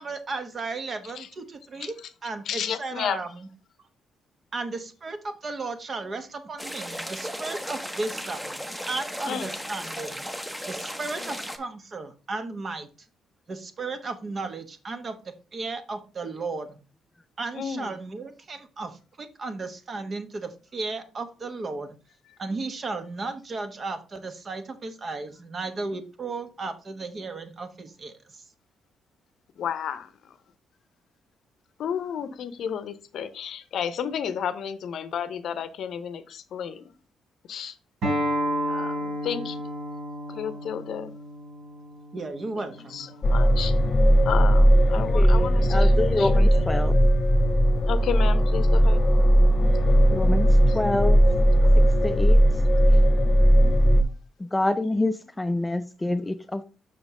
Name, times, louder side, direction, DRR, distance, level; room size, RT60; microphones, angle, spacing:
voice 1, 0.0-1.9 2.2-3.5 4.5-10.2 10.7-12.9 13.5-16.8 17.4-22.0 22.4-28.4 42.1-43.1, right 3 dB, 40° right, 1.1 m, -35 dB
voice 2, 2.5-3.2 9.3-9.5 11.2-11.4 17.5-17.9 22.3-22.4 29.6-30.4 31.8-36.9 37.5-37.8 38.7-39.6 40.3-41.1 42.6-43.7 44.2-46.7 47.9-49.1 49.6-50.6 51.6-51.9 52.8-52.9 53.6-54.1, left 8 dB, 70° left, 0.7 m, -33 dB
sound 1, 6.6-11.6, equal, 5° right, 0.8 m, -35 dB
Acoustic guitar, 38.0-43.2, equal, 70° right, 3.7 m, -31 dB
sound 2, 43.2-54.0, equal, 40° left, 0.9 m, -18 dB
voice 3, 45.0-47.0 50.1-50.5 50.7-51.2 52.0-52.5 54.4-56.6, left 2 dB, 15° left, 0.4 m, -27 dB
5.9 x 5.2 x 3.7 m
cardioid pair, 90°, 0 cm